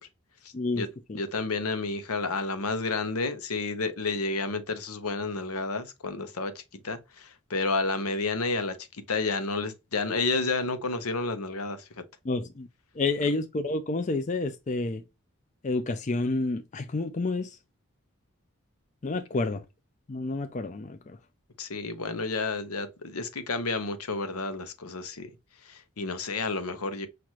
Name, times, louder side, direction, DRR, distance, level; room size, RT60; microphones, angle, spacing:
voice 1, 0.5-0.8 12.3-12.7 13.0-15.0 15.6-17.5 19.0-19.6 20.1-21.0, left 3 dB, 35° left, 0.4 m, -29 dB
voice 2, 1.1-11.9 21.6-25.3 25.6-27.1, left 3 dB, 90° left, 0.9 m, -30 dB
5.9 x 2.5 x 2.9 m
head